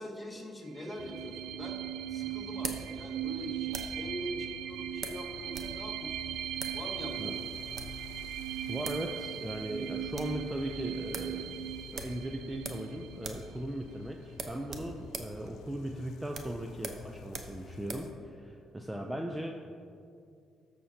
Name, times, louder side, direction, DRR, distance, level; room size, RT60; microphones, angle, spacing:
voice 1, 0.0-1.8 2.1-6.3 6.7-7.6, equal, 15° left, -2 dB, 1.6 m, -43 dB
sound 1, 0.7-14.1, right 10 dB, 85° right, 0.3 m, -39 dB
sound 2, 1.0-18.1, left 6 dB, 80° left, 0.3 m, -51 dB
sound 3, 1.2-4.1 5.0-5.8 6.0-6.1 6.5-6.8 7.5-8.0 8.6-8.7 8.8-9.1 9.4-9.5 9.8-10.4 10.7-10.8 11.1-11.3 11.9-12.9 13.2-13.5 13.8-13.9 14.3-18.1, right 4 dB, 50° right, 0.8 m, -42 dB
voice 2, 8.7-19.5, right 1 dB, 10° right, 2 dB, 0.5 m, -38 dB
13.5 x 6.4 x 2.8 m, 2.4 s
cardioid pair, 90°, 0 cm